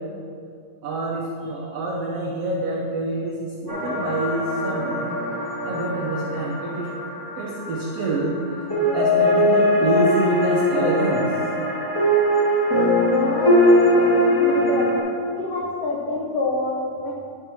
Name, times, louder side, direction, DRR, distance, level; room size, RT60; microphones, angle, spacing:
voice 1, 0.8-5.2 5.6-6.9 7.4-8.4 8.9-11.3, right 2 dB, 90° right, -3 dB, 1.3 m, -27 dB
sound 1, 3.7-15.0, left 1 dB, 20° left, 0.5 m, -21 dB
voice 2, 12.9-13.6 13.9-15.0 15.3-17.1, left 2 dB, 90° left, -3 dB, 1.3 m, -27 dB
10.0 x 4.5 x 6.2 m, 2.5 s
omnidirectional pair, 4.0 m